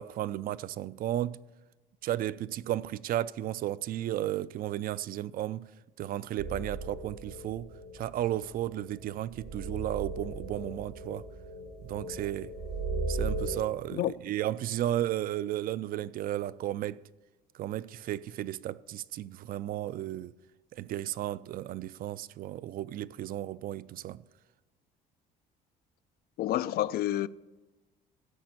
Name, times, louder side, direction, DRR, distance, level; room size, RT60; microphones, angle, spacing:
voice 1, 0.0-1.4 2.0-5.7 6.0-7.7 7.9-11.2 11.8-12.5 13.1-17.0 17.5-20.3 20.7-24.2, right 13 dB, 60° right, 0.4 m, -34 dB
sound 1, 6.4-13.5, right 2 dB, 85° right, 2.2 m, -37 dB
voice 2, 26.4-27.3, left 13 dB, 65° left, 0.4 m, -29 dB
13.5 x 5.1 x 7.9 m
cardioid pair, 110°, 17 cm